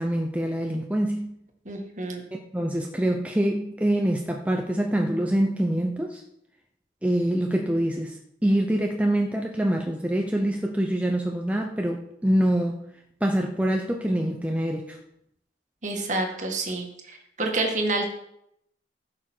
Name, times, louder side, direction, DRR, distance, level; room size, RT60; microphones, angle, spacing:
voice 1, 0.0-1.3 2.5-6.2 7.0-8.2 8.4-12.8 13.2-15.0, right 1 dB, 10° right, 1 dB, 0.8 m, -25 dB
voice 2, 1.7-2.2 15.8-18.1, right 2 dB, 45° right, 3 dB, 2.0 m, -28 dB
16.0 x 6.4 x 4.6 m, 0.77 s
head